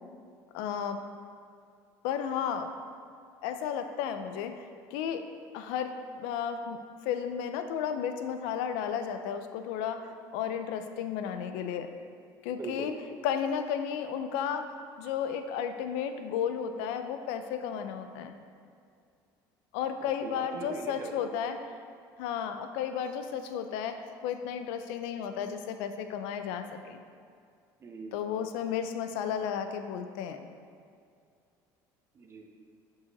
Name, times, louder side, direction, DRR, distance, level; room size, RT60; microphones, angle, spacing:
voice 1, 0.5-1.0 2.0-2.7 3.4-5.3 5.5-11.9 12.4-13.0 13.2-14.7 15.0-18.4 19.7-21.6 22.2-27.0 28.1-30.4, left 8 dB, 90° left, 8 dB, 0.5 m, -33 dB
voice 2, 12.6-13.0 20.0-21.1 21.4-21.5 27.8-28.2 32.1-32.5, right 3 dB, 30° right, 1 dB, 1.0 m, -41 dB
5.6 x 4.7 x 6.5 m, 2.3 s
cardioid pair, 120°, 9 cm